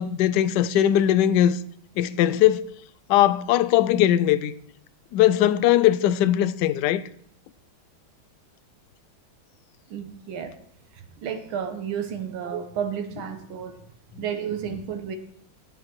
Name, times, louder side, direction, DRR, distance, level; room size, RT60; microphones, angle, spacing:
voice 1, 0.0-1.6 2.0-2.7 3.1-4.5 5.1-7.0, left 12 dB, 75° left, 1.0 m, -20 dB
voice 2, 9.9-10.5 11.2-13.8 14.2-15.2, right 8 dB, 90° right, 1.8 m, -31 dB
9.7 x 9.0 x 4.6 m
omnidirectional pair, 2.2 m